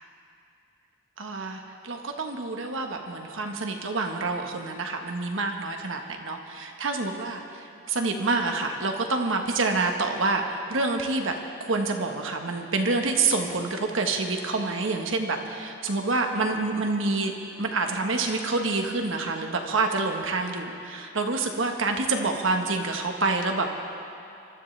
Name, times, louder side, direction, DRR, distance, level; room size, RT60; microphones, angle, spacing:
voice 1, 1.2-11.3 11.6-23.8, right 3 dB, 75° right, 3 dB, 1.2 m, -27 dB
24.0 x 13.0 x 3.3 m, 2.6 s
head